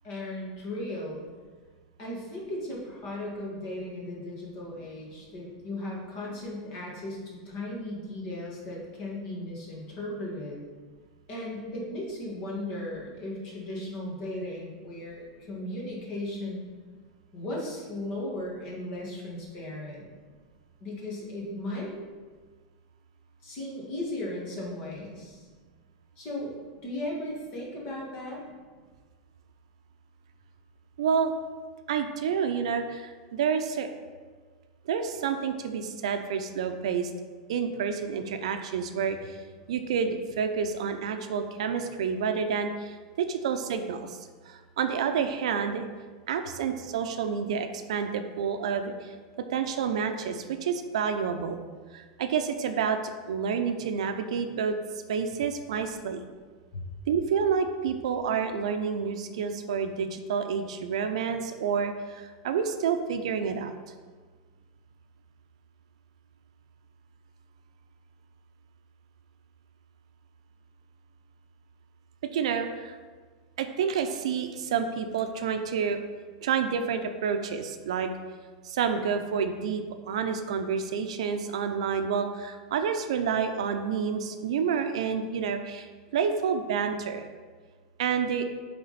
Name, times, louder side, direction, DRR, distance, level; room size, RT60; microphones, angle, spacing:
voice 1, 0.0-1.2 2.0-10.6 11.3-16.6 17.3-20.1 20.8-21.9 23.4-25.5 26.2-26.5 26.8-28.4 56.7-56.8, left 1 dB, 40° left, -4 dB, 1.8 m, -36 dB
voice 2, 31.0-31.3 31.9-33.9 34.9-37.1 37.5-39.2 39.7-44.0 44.5-45.9 46.3-48.9 49.5-51.6 51.9-53.0 53.3-54.8 55.1-56.2 57.1-63.7 72.3-73.0 73.6-76.0 76.4-78.1 78.6-85.9 86.1-87.3 88.0-88.5, right 6 dB, 90° right, 7 dB, 0.6 m, -29 dB
8.6 x 3.7 x 4.1 m, 1.5 s
supercardioid pair, 170°, 3 cm